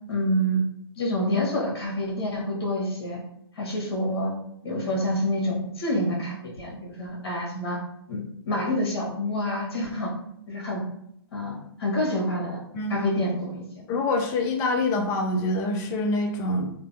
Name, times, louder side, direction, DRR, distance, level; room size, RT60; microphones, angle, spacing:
voice 1, 0.1-0.6 1.0-3.2 3.5-4.3 4.6-7.8 8.1-10.1 10.5-10.8 11.3-12.6 12.9-13.8, equal, 65° left, -3 dB, 1.0 m, -27 dB
voice 2, 13.9-16.7, left 2 dB, 20° left, 3 dB, 0.3 m, -25 dB
2.6 x 2.1 x 2.6 m, 0.74 s
hypercardioid pair, 135°, 13 cm